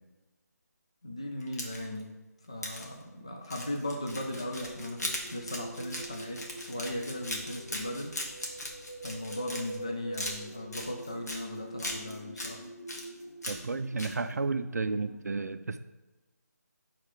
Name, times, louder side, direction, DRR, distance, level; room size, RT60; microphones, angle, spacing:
voice 1, 1.0-2.2 2.5-8.1 9.0-12.6, left 1 dB, 20° left, 2 dB, 0.4 m, -38 dB
sound 1, 1.4-2.0 2.6-2.8 3.4-9.8 10.1-11.4 11.8-12.5 12.9-13.7 14.0-14.1, left 1 dB, 65° left, 1.7 m, -38 dB
sound 2, 4.1-15.2, right 1 dB, 50° left, 1.2 m, -46 dB
voice 2, 13.5-15.8, right 3 dB, 70° right, 11 dB, 0.4 m, -32 dB
6.5 x 3.7 x 4.8 m, 1.1 s
figure-of-eight pair, 180°, 9 cm